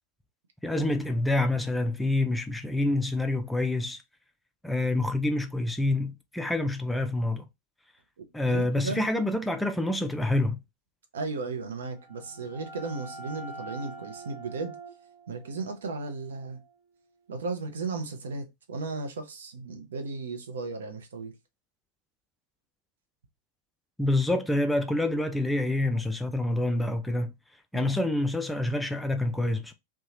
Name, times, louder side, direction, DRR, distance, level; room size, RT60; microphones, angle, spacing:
voice 1, 0.6-4.0 4.6-7.5 8.3-10.6 24.0-27.3 27.7-29.7, left 2 dB, 5° left, 0.3 m, -27 dB
voice 2, 8.5-9.0 11.1-14.7 15.3-16.6 17.3-21.3 27.7-28.0, right 3 dB, 65° right, 0.6 m, -35 dB
sound 1, 11.8-17.3, right 3 dB, 40° right, 1.0 m, -46 dB
2.8 x 2.2 x 2.8 m
figure-of-eight pair, 90°, 0 cm